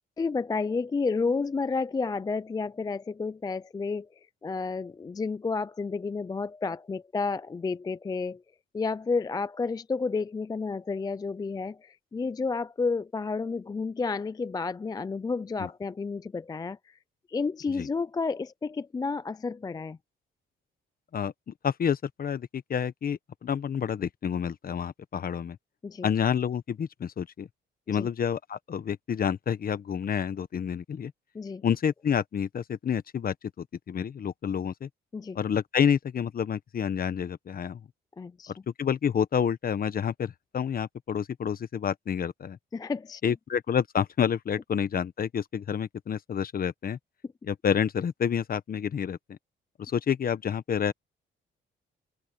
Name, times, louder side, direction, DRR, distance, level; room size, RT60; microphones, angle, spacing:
voice 1, 0.2-4.1 4.4-8.4 8.7-17.0 17.3-20.0 25.8-26.1 27.9-28.1 31.3-31.6 35.1-35.4 38.2-38.5 42.7-43.2, left 4 dB, 20° left, 0.4 m, -31 dB
voice 2, 21.1-25.6 26.0-27.5 27.9-31.1 31.6-34.9 35.3-37.8 38.5-42.6 43.2-47.0 47.5-49.4 49.8-50.9, left 8 dB, 45° left, 1.2 m, -29 dB
cardioid pair, 90°, 20 cm